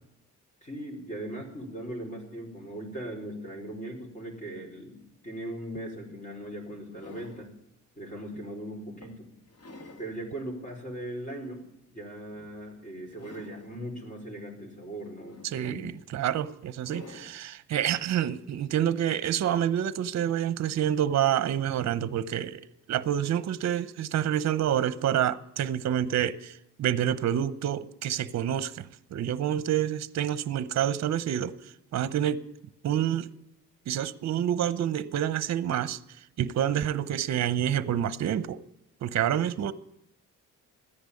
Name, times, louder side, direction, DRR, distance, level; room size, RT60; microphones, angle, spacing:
voice 1, 0.6-7.5 7.9-9.3 10.0-11.6 11.9-15.8, right 1 dB, 25° left, 4.9 m, -39 dB
sound 1, 6.5-7.6 8.2-8.4 9.0-10.2 10.7-10.8 12.3-12.7 13.1-13.8 15.0-15.9 16.8-17.4 18.8-18.9, left 2 dB, 50° left, 2.1 m, -50 dB
voice 2, 15.4-31.6 31.9-32.4 32.8-33.3 33.9-36.0 36.4-38.6 39.0-39.7, right 10 dB, 55° right, 0.8 m, -28 dB
14.0 x 10.5 x 8.4 m
cardioid pair, 120°, 32 cm